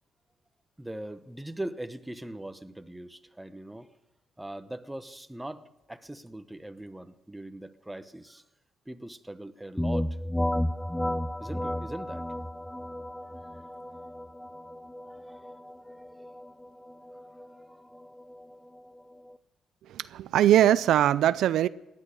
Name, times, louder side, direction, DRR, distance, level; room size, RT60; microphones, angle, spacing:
voice 1, 0.8-3.9 4.4-8.4 8.9-10.2 11.4-12.2 13.3-13.6 15.1-15.5 15.8-16.3 17.7-18.1, right 1 dB, 10° right, 1.0 m, -41 dB
sound 1, 9.8-19.4, left 1 dB, 10° left, 0.6 m, -34 dB
voice 2, 19.8-21.7, right 12 dB, 80° right, 0.4 m, -22 dB
18.5 x 11.0 x 6.4 m
cardioid pair, 90°, 0 cm